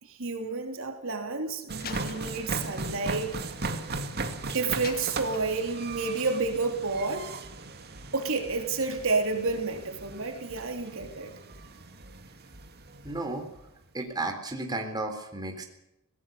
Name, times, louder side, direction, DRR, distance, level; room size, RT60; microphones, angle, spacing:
voice 1, 0.0-3.4 4.4-7.3 8.1-11.3, right 3 dB, 65° right, 4 dB, 3.2 m, -30 dB
sound 1, 1.7-13.7, right 3 dB, 50° right, 2.2 m, -38 dB
Slam, 1.8-4.2 4.8-6.0, left 6 dB, 45° left, 1.9 m, -46 dB
voice 2, 13.0-13.5 13.9-15.7, right 2 dB, 20° right, 3 dB, 3.8 m, -33 dB
24.0 x 18.0 x 6.9 m, 0.85 s
head